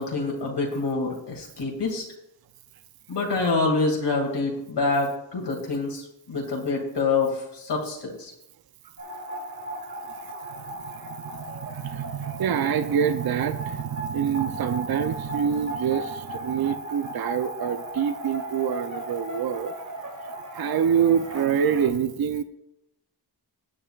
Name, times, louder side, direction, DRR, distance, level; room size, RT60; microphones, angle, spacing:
voice 1, 0.0-2.0 3.1-6.0 6.3-8.3, left 3 dB, 75° left, -1 dB, 2.4 m, -26 dB
sound 1, 9.0-21.9, right 1 dB, 45° right, 3.0 m, -36 dB
voice 2, 11.5-19.7 20.5-22.4, right 8 dB, 60° right, 10 dB, 0.6 m, -26 dB
17.0 x 9.0 x 2.4 m, 0.83 s
wide cardioid pair, 115°, 41 cm